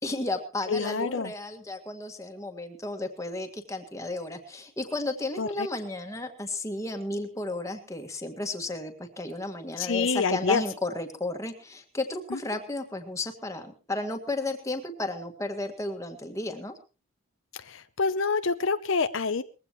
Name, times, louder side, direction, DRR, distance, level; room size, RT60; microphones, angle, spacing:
voice 1, 0.0-16.8, left 2 dB, 15° left, 4 dB, 1.9 m, -33 dB
voice 2, 0.7-1.3 5.4-5.7 9.8-10.6 12.3-12.4 17.5-19.4, left 4 dB, 70° left, 11 dB, 0.7 m, -27 dB
21.0 x 15.5 x 3.1 m, 0.33 s
head